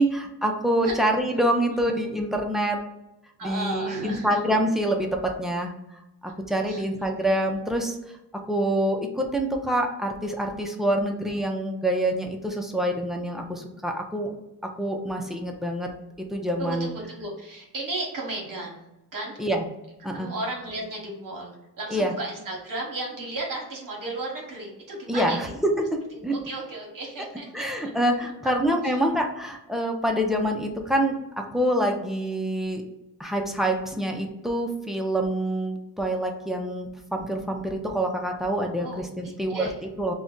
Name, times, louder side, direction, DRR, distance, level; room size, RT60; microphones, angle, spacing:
voice 1, 0.0-2.8 3.4-5.1 5.4-5.7 6.2-8.0 8.5-14.3 14.8-15.9 16.3-16.9 19.4-19.6 20.0-20.3 21.9-22.1 25.1-25.5 26.2-26.4 27.5-32.8 33.2-39.6 40.0-40.1, right 1 dB, ahead, 2 dB, 0.3 m, -26 dB
voice 2, 3.4-4.4 6.7-7.1 16.6-18.8 19.1-19.4 20.1-25.5 26.3-27.6 28.4-28.5 28.8-29.0 38.8-39.8, right 2 dB, 55° right, -1 dB, 0.9 m, -34 dB
2.5 x 2.1 x 3.6 m, 0.92 s
cardioid pair, 105°, 39 cm